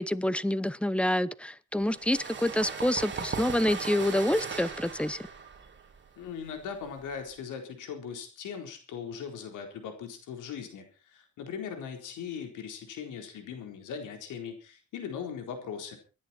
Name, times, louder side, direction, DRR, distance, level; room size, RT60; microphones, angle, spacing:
voice 1, 0.0-5.2, left 1 dB, 5° left, 0.8 m, -27 dB
sound 1, 1.9-7.3, right 5 dB, 40° right, 3.3 m, -38 dB
voice 2, 6.2-16.0, left 7 dB, 80° left, 4.2 m, -39 dB
26.0 x 10.5 x 4.4 m
cardioid pair, 90°, 30 cm